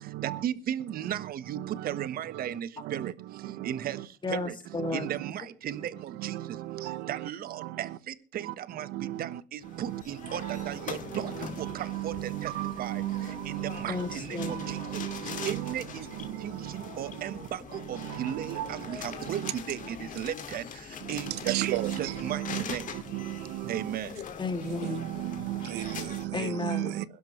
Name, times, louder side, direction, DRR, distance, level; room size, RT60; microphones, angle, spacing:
voice 1, 0.0-4.6 4.9-22.9 23.7-24.2 26.8-27.0, right 10 dB, 60° right, 1.3 m, -37 dB
voice 2, 4.2-5.1 13.9-14.7 24.4-25.2 25.6-25.7 26.3-27.0, left 3 dB, 25° left, 2.5 m, -33 dB
sound 1, 9.6-26.3, left 7 dB, 50° left, 2.3 m, -42 dB
voice 3, 11.6-13.7 14.4-15.6 18.6-18.7 19.4-19.5 21.5-22.6 23.1-23.6 25.2-27.0, right 15 dB, 85° right, 0.8 m, -33 dB
21.5 x 11.5 x 3.2 m
cardioid pair, 110°, 17 cm